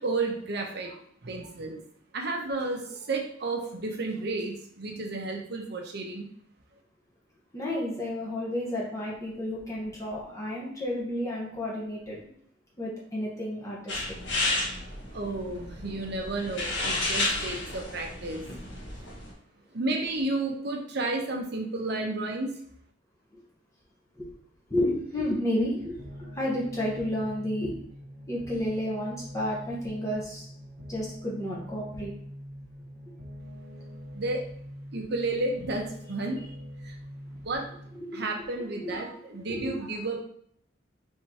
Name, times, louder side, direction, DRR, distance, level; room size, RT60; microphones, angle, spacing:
voice 1, 0.0-1.8 2.1-6.3 14.4-14.6 15.1-18.4 19.7-22.5 34.1-34.4 34.9-36.4 36.8-37.0 37.4-37.6 38.1-40.2, right 2 dB, 60° right, 2 dB, 0.8 m, -32 dB
voice 2, 7.5-12.2 12.8-14.0 23.3-23.4 24.2-24.3 24.7-27.7 28.3-30.5 30.9-32.1 37.9-38.4 38.7-39.2 39.5-39.8, left 1 dB, 15° left, -5 dB, 1.0 m, -31 dB
sound 1, 13.9-19.3, left 2 dB, 65° left, 1.5 m, -32 dB
sound 2, 26.0-38.0, equal, 90° right, 0.9 m, -44 dB
4.6 x 3.7 x 2.8 m, 0.66 s
head